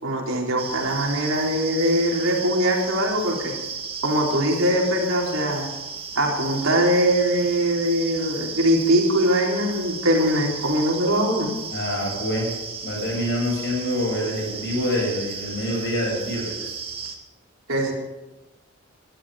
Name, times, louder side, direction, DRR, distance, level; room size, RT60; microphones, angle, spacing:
voice 1, 0.0-3.5 4.0-5.7 6.1-11.5 17.7-17.9, equal, 80° right, -1 dB, 4.2 m, -22 dB
sound 1, 0.6-17.2, right 5 dB, 25° right, 2.0 m, -34 dB
voice 2, 11.7-12.5 12.8-16.7, left 1 dB, 55° left, -1 dB, 7.9 m, -26 dB
21.0 x 12.5 x 5.1 m, 1.1 s
head